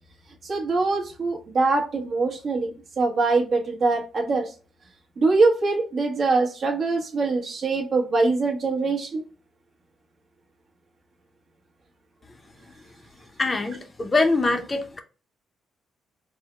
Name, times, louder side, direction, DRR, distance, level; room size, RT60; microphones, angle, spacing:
voice 1, 0.4-2.7 3.0-4.5 5.2-9.2, right 3 dB, 50° right, 1.1 m, -23 dB
voice 2, 13.4-15.0, left 3 dB, 25° left, 0.6 m, -23 dB
4.5 x 2.1 x 3.1 m
cardioid pair, 90°, 0 cm